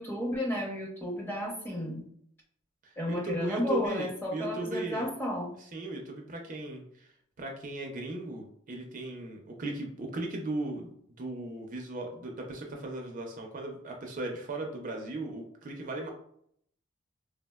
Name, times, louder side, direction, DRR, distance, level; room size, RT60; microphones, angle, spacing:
voice 1, 0.0-2.0 3.0-5.5, left 1 dB, 10° left, -2 dB, 0.7 m, -32 dB
voice 2, 2.8-5.1 5.7-7.1 7.4-10.9 11.2-16.1, right 2 dB, 40° right, 2 dB, 0.4 m, -37 dB
3.3 x 2.0 x 2.2 m, 0.68 s
head